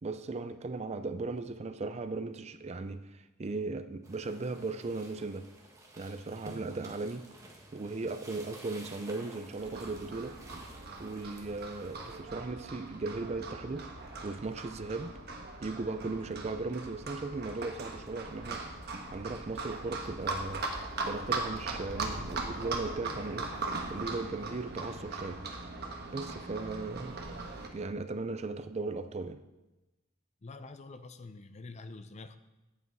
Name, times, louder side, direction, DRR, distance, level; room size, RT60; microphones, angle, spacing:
voice 1, 0.0-5.5 6.0-7.3 7.7-10.4 11.0-13.9 14.2-15.2 15.6-18.6 19.1-20.7 21.0-23.5 23.9-25.4 26.1-27.2 27.7-29.4, right 3 dB, 30° right, 0.4 m, -37 dB
sound 1, 4.0-12.2, right 1 dB, 15° right, 1.4 m, -52 dB
Livestock farm animals working animals, 9.6-27.7, right 3 dB, 50° right, 1.3 m, -39 dB
voice 2, 30.4-32.4, left 3 dB, 30° left, 0.5 m, -46 dB
9.7 x 8.3 x 4.7 m
head